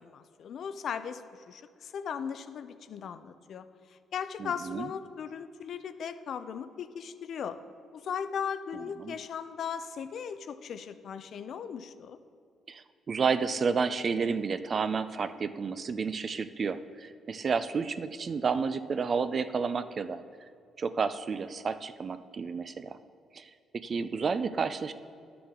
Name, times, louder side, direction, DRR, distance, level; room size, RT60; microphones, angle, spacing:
voice 1, 0.0-7.6 7.9-12.2, left 7 dB, 65° left, 11 dB, 0.5 m, -38 dB
voice 2, 4.4-4.9 9.0-9.1 12.7-20.2 20.8-23.0 23.3-24.9, right 5 dB, 45° right, 12 dB, 0.4 m, -31 dB
11.0 x 6.8 x 3.7 m, 2.4 s
cardioid pair, 90°, 0 cm